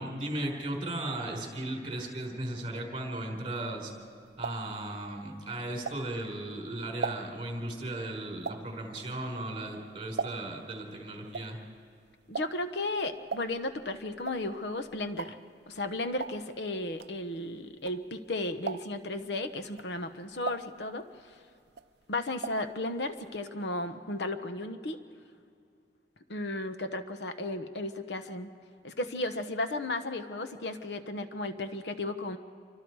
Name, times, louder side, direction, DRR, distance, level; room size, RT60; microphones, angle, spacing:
voice 1, 0.0-3.9 4.4-11.6, right 1 dB, 30° right, 1 dB, 4.7 m, -36 dB
sound 1, 3.9-6.4 6.8-10.7 11.0-18.3 18.6-19.2 19.6-21.4 21.6-22.7 23.0-23.1 23.3-23.4, right 5 dB, 65° right, 0.5 m, -40 dB
voice 2, 12.3-15.4 15.7-21.3 22.1-25.0 26.3-28.5 28.8-32.4, left 2 dB, 70° left, 8 dB, 1.1 m, -34 dB
28.0 x 24.5 x 4.8 m, 2.4 s
head